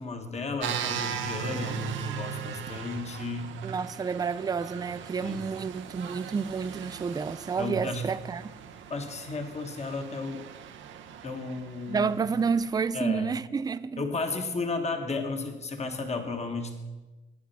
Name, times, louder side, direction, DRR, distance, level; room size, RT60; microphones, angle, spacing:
voice 1, 0.0-3.5 5.2-5.4 7.6-8.0 8.9-10.4 11.2-12.1 12.9-13.3 14.0-16.7, left 3 dB, 35° left, 1.3 m, -33 dB
sound 1, 0.6-12.9, right 8 dB, 75° right, 0.8 m, -39 dB
voice 2, 3.6-8.5 11.9-14.1, right 5 dB, 20° right, 0.4 m, -30 dB
9.4 x 8.6 x 5.7 m
cardioid pair, 90°, 20 cm